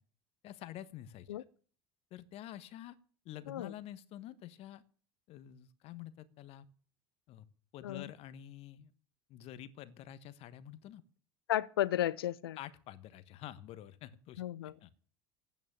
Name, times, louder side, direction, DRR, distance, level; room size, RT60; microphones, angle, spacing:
voice 1, 0.4-1.4 2.1-3.0 3.2-4.8 5.3-6.6 7.3-7.5 7.7-8.9 9.3-11.0 12.6-15.0, left 12 dB, 55° left, 1.3 m, -48 dB
voice 2, 11.5-12.6 14.4-14.7, left 12 dB, 85° left, 0.7 m, -33 dB
11.0 x 9.4 x 9.9 m
hypercardioid pair, 75°, 12 cm